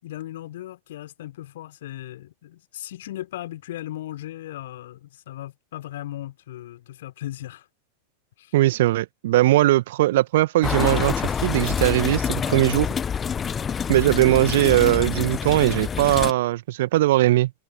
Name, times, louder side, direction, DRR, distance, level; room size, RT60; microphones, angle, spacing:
voice 1, 0.0-7.7 8.4-8.5, left 14 dB, 55° left, 5.6 m, -37 dB
voice 2, 8.5-12.9 13.9-17.5, right 16 dB, 55° right, 2.1 m, -20 dB
sound 1, 10.6-16.3, left 7 dB, 20° left, 0.9 m, -26 dB
figure-of-eight pair, 90°, 0 cm